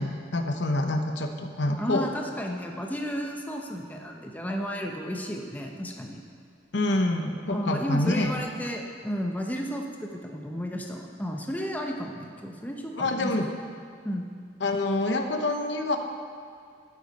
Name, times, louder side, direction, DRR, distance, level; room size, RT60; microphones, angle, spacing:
voice 1, 0.0-2.1 6.7-8.3 13.0-13.5 14.6-16.0, left 2 dB, 65° left, 5 dB, 0.8 m, -26 dB
voice 2, 1.8-6.2 7.5-13.3 14.0-14.3, equal, 10° left, 1 dB, 0.7 m, -33 dB
11.5 x 8.2 x 5.4 m, 2.2 s
head